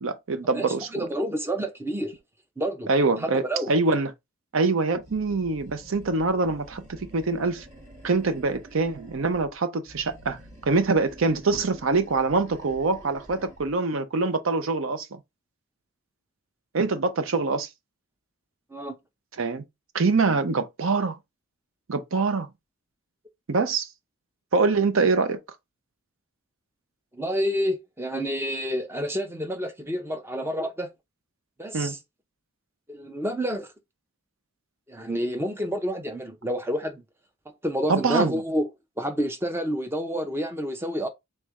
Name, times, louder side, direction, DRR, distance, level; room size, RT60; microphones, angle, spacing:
voice 1, 0.0-1.1 2.9-4.1 4.5-7.7 8.0-10.4 10.7-15.2 16.7-17.7 19.4-19.6 19.9-21.2 21.9-22.5 23.5-23.9 24.5-25.4 31.7-32.0 37.9-38.4, right 3 dB, 65° right, 0.6 m, -24 dB
voice 2, 0.5-2.1 2.6-2.9 3.2-3.7 18.7-19.0 27.1-30.9 31.6-32.0 32.9-33.7 34.9-37.0 37.6-38.6 39.0-41.1, equal, 10° right, 0.6 m, -29 dB
Animal, 5.0-9.5 9.8-13.8, right 1 dB, 35° right, 1.6 m, -48 dB
3.2 x 3.2 x 3.5 m
head